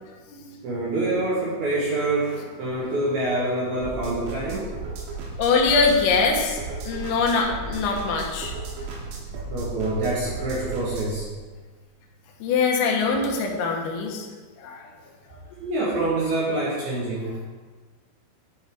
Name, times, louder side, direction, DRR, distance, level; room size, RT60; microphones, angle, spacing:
voice 1, 0.6-4.7 9.0-9.1 9.5-11.3 15.6-17.4, right 2 dB, 65° right, -7 dB, 2.6 m, -26 dB
sound 1, 3.8-11.2, right 3 dB, 90° right, 3.9 m, -35 dB
voice 2, 5.4-6.6 6.8-8.5 12.4-14.3 14.6-14.8, left 4 dB, 75° left, 0 dB, 3.2 m, -23 dB
10.5 x 5.3 x 3.6 m, 1.4 s
omnidirectional pair, 5.8 m